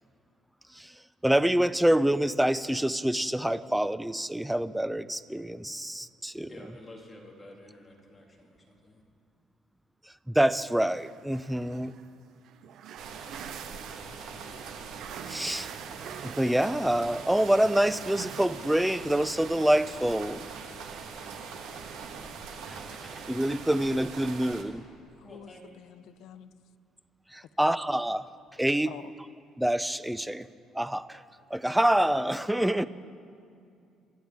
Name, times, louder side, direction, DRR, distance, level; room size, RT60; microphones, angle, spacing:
voice 1, 0.7-6.5 10.0-11.9 15.3-15.7 16.2-20.5 22.5-24.8 27.3-28.9 29.6-30.5 30.7-31.2 31.5-32.8, right 1 dB, 5° right, 0.3 m, -27 dB
voice 2, 6.5-9.0 25.2-25.6, left 1 dB, 15° left, 2.0 m, -49 dB
sound 1, 10.8-18.5, right 9 dB, 55° right, 0.5 m, -46 dB
sound 2, 13.0-24.6, right 5 dB, 75° right, 1.4 m, -42 dB
voice 3, 25.1-26.5 27.6-27.8 28.9-29.1, left 11 dB, 65° left, 0.5 m, -47 dB
24.5 x 11.5 x 3.5 m
cardioid pair, 165°, 0 cm